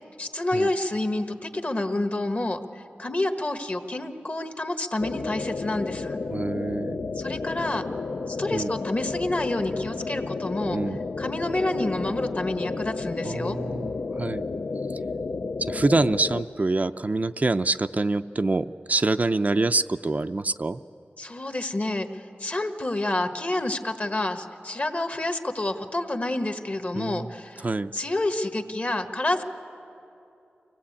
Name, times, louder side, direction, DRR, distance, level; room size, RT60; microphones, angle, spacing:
voice 1, 0.2-6.2 7.2-7.8 8.3-10.8 11.2-13.6 21.2-27.7 27.9-29.4, left 2 dB, 40° left, 7 dB, 1.3 m, -28 dB
sound 1, 5.0-16.4, left 4 dB, 65° left, 0.5 m, -32 dB
voice 2, 6.3-7.1 8.5-8.7 10.7-11.0 13.2-14.4 15.6-20.8 26.9-27.3 27.6-27.9, right 2 dB, 40° right, 9 dB, 0.4 m, -26 dB
24.5 x 18.0 x 8.6 m, 2.8 s
wide cardioid pair, 70°, 4 cm